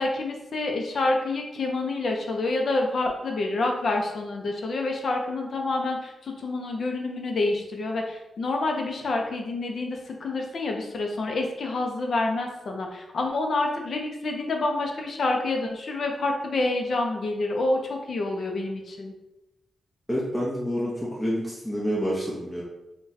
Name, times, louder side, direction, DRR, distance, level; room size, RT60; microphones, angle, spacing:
voice 1, 0.0-19.1, left 2 dB, 55° left, 2 dB, 0.5 m, -28 dB
voice 2, 20.1-22.6, equal, 5° left, -7 dB, 0.5 m, -28 dB
2.6 x 2.2 x 3.8 m, 0.96 s
wide cardioid pair, 155°, 0 cm